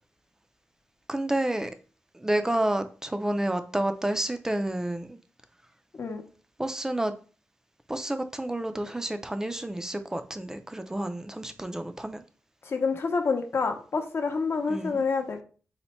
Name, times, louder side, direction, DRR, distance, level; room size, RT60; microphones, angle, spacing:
voice 1, 1.1-1.7 2.1-5.2 6.6-7.1 7.9-12.2 14.7-15.0, right 1 dB, 10° right, 0.3 m, -30 dB
voice 2, 12.6-15.4, left 4 dB, 55° left, 0.6 m, -28 dB
4.2 x 2.1 x 4.1 m
wide cardioid pair, 150°, 5 cm